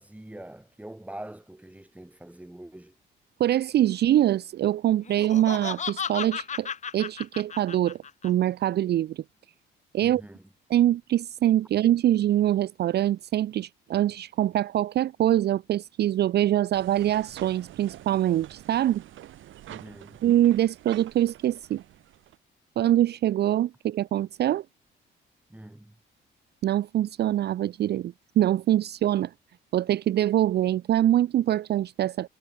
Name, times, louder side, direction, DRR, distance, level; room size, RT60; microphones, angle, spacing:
voice 1, 0.0-2.9 10.0-10.4 19.7-20.2 25.5-25.9, right 1 dB, 5° right, 2.8 m, -44 dB
voice 2, 3.4-8.0 8.2-9.2 9.9-10.2 10.7-19.0 20.2-21.8 22.8-24.6 26.6-29.3 29.7-32.3, right 12 dB, 55° right, 0.5 m, -24 dB
Laughter, 5.0-8.3, left 7 dB, 35° left, 0.8 m, -34 dB
sound 1, 16.7-22.4, right 13 dB, 80° right, 2.9 m, -47 dB
cardioid pair, 90°, 20 cm